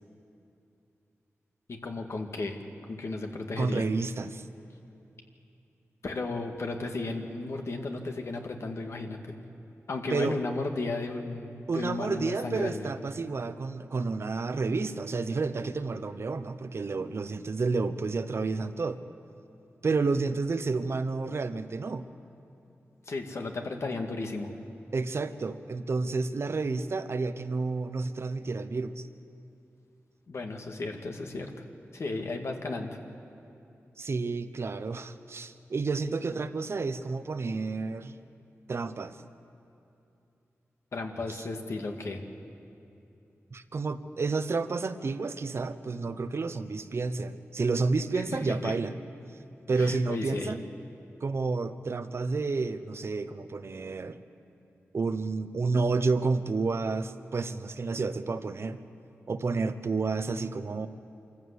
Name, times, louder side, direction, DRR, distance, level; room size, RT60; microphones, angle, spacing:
voice 1, 1.7-2.6 2.9-3.8 6.0-9.3 9.9-12.9 23.1-24.5 30.3-31.7 31.9-32.9 40.9-42.2 48.1-48.7 49.8-50.6, left 3 dB, 65° left, 3 dB, 2.0 m, -34 dB
voice 2, 3.6-4.4 10.1-10.4 11.7-19.0 19.8-22.0 24.9-29.0 34.0-38.2 38.7-39.2 41.4-41.5 43.5-48.9 49.7-50.6 51.2-54.2 54.9-58.8 59.3-60.9, right 4 dB, 55° right, 11 dB, 0.9 m, -30 dB
25.5 x 14.5 x 8.4 m, 2.8 s
wide cardioid pair, 75°, 5 cm